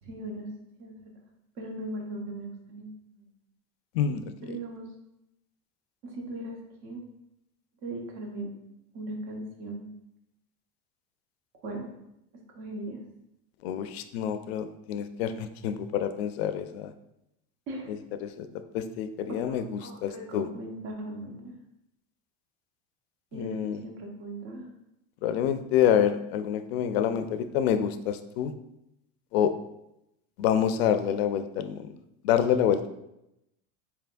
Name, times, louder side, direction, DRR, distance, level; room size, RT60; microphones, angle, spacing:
voice 1, 0.0-0.5 0.8-1.1 1.6-3.3 4.4-4.9 6.0-7.0 7.8-8.5 8.9-9.9 11.6-11.9 12.5-13.0 17.7-18.0 19.5-21.6 23.3-24.7, right 1 dB, 55° right, 1 dB, 1.0 m, -38 dB
voice 2, 13.6-16.9 18.2-18.5 18.7-20.5 23.3-23.8 25.2-28.5 29.3-29.5 30.4-31.9 32.2-32.9, left 9 dB, 90° left, 10 dB, 0.5 m, -27 dB
4.3 x 3.4 x 2.5 m, 0.84 s
supercardioid pair, 125°, 30 cm